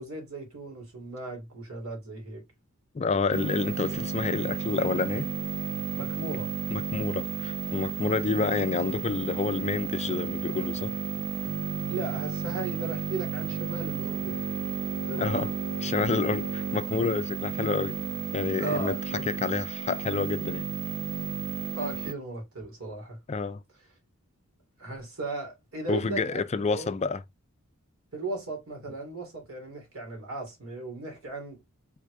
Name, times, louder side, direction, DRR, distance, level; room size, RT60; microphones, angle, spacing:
voice 1, 0.0-2.4 5.9-6.5 11.9-14.4 15.1-15.5 18.6-19.2 21.7-23.2 24.8-26.9 28.1-31.6, right 2 dB, 75° right, 2.7 m, -36 dB
voice 2, 2.9-5.3 6.7-10.9 15.2-15.5 15.8-17.9 18.3-19.0 19.3-20.7 23.3-23.6 25.9-27.2, left 4 dB, 30° left, 0.4 m, -28 dB
sound 1, 3.3-22.1, right 6 dB, 50° right, 0.3 m, -33 dB
4.9 x 4.3 x 2.3 m
head